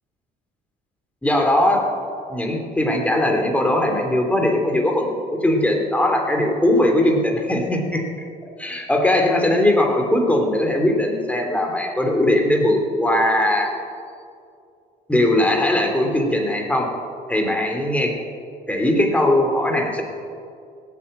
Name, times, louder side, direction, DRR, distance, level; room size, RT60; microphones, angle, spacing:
voice 1, 1.2-1.9 2.3-8.0 8.6-13.7 15.1-16.9 17.3-18.1 18.7-20.0, left 1 dB, 10° left, 2 dB, 3.1 m, -19 dB
17.5 x 8.4 x 8.9 m, 2.4 s
cardioid pair, 110°, 17 cm